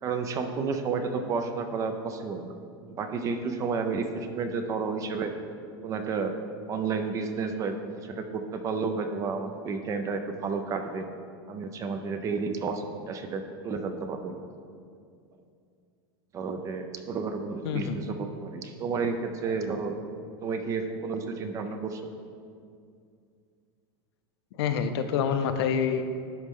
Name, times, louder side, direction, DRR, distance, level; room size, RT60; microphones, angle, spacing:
voice 1, 0.0-2.5 2.9-5.3 5.8-6.3 6.7-11.1 11.5-14.3 16.3-20.0 20.4-22.0, right 4 dB, 25° right, 7 dB, 0.4 m, -31 dB
voice 2, 17.6-18.0 24.6-26.0, left 7 dB, 75° left, 8 dB, 0.5 m, -27 dB
11.5 x 4.2 x 3.6 m, 2.3 s
supercardioid pair, 160°, 14 cm